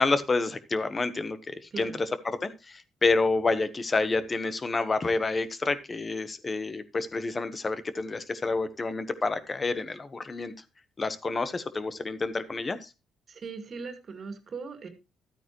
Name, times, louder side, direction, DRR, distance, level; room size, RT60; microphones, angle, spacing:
voice 1, 0.0-10.5 11.0-12.9, left 3 dB, 30° left, 12 dB, 1.2 m, -28 dB
voice 2, 13.3-14.9, right 5 dB, 50° right, 7 dB, 2.2 m, -39 dB
13.0 x 9.1 x 3.1 m, 0.27 s
cardioid pair, 90°, 0 cm